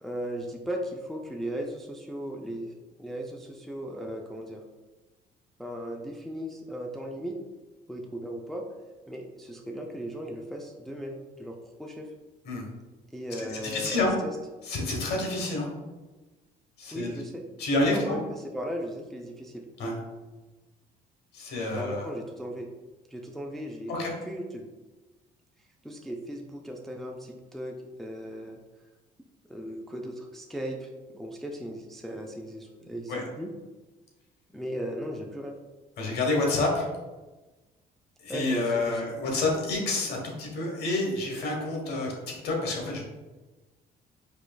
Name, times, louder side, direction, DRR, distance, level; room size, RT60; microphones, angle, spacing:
voice 1, 0.0-2.7 3.0-4.6 5.6-7.4 7.9-8.6 9.1-12.1 13.1-14.3 16.9-17.4 17.9-18.2 18.5-19.6 21.7-22.7 23.1-24.6 25.8-28.6 29.5-30.9 31.1-33.5 34.5-35.6 38.3-39.1, equal, ahead, 1 dB, 0.3 m, -36 dB
voice 2, 13.4-14.1 14.6-15.7 16.8-17.1 17.6-18.2 19.8-19.9 21.3-22.0 23.9-24.1 33.1-33.2 36.0-36.9 38.2-43.0, left 2 dB, 75° left, -1 dB, 1.1 m, -28 dB
4.6 x 3.0 x 2.2 m, 1.2 s
cardioid pair, 110°, 17 cm